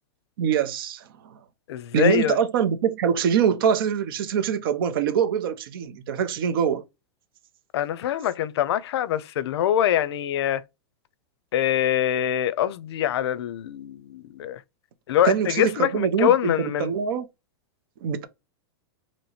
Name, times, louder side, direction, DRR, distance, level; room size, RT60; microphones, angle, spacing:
voice 1, 0.4-1.4 1.9-6.8 15.2-17.2 18.0-18.3, right 8 dB, 60° right, 0.8 m, -24 dB
voice 2, 1.7-2.4 7.7-10.6 11.5-14.6 15.1-16.9, left 11 dB, 80° left, 0.5 m, -24 dB
3.0 x 3.0 x 4.1 m
supercardioid pair, 165°, 13 cm